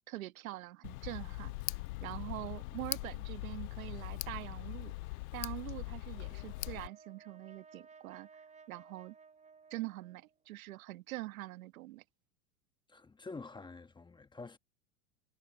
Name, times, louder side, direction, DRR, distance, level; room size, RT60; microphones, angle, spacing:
voice 1, 0.1-4.9 5.3-8.3 8.7-9.1 9.7-12.0, right 18 dB, 75° right, 1.5 m, -44 dB
Tick, 0.8-6.9, left 21 dB, 70° left, 0.5 m, -41 dB
Brass instrument, 6.1-10.5, right 5 dB, 15° right, 4.2 m, -59 dB
voice 2, 12.9-14.6, left 3 dB, 10° left, 1.3 m, -47 dB
hypercardioid pair, 120°, 42 cm